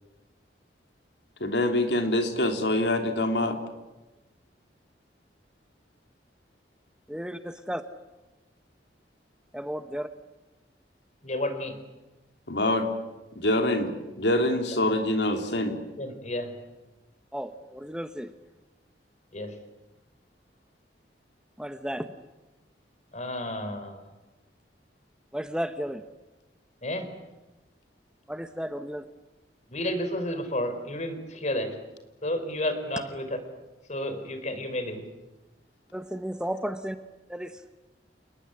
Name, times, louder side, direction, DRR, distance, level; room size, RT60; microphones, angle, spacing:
voice 1, 1.4-3.6 12.5-12.9 13.3-13.9 14.2-15.8, left 1 dB, 80° left, 5 dB, 3.2 m, -25 dB
voice 2, 7.1-7.8 9.5-10.1 17.3-18.3 21.6-22.1 25.3-26.0 28.3-29.0 35.9-37.0 37.3-37.6, equal, 5° right, 9 dB, 1.0 m, -33 dB
voice 3, 11.2-11.7 16.0-16.5 19.3-19.5 23.1-24.0 26.8-27.1 29.7-31.7 32.2-33.3 33.9-35.0, left 1 dB, 40° left, 9 dB, 4.2 m, -31 dB
28.5 x 20.0 x 9.9 m, 1.1 s
head